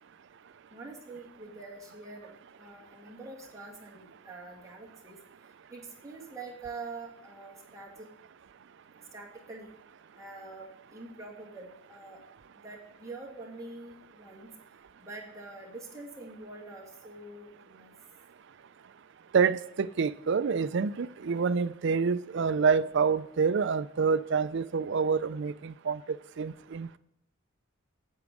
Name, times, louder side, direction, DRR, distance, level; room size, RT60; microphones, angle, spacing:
voice 1, 0.7-5.2 5.7-8.1 9.1-9.7 10.1-12.2 12.6-14.5 15.0-17.9, right 3 dB, 15° right, 2.1 m, -45 dB
voice 2, 19.3-27.0, right 5 dB, 55° right, 0.4 m, -27 dB
8.5 x 8.0 x 4.9 m
head